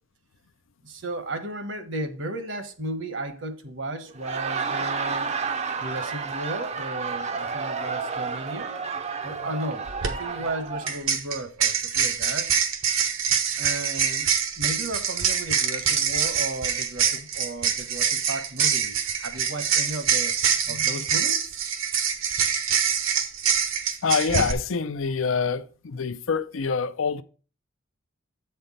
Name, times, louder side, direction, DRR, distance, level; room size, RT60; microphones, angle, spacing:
voice 1, 0.8-5.4 5.8-8.7 9.2-12.5 13.6-14.3 14.6-20.3 20.7-21.6, right 1 dB, 65° right, 1.1 m, -34 dB
Laughter, 4.1-11.0, right 5 dB, 30° right, 0.5 m, -31 dB
sound 1, 9.9-10.1 10.9-24.5, right 7 dB, 80° right, 1.1 m, -25 dB
voice 2, 20.7-21.0 24.0-27.2, left 5 dB, 75° left, 0.5 m, -26 dB
7.8 x 4.4 x 5.3 m
head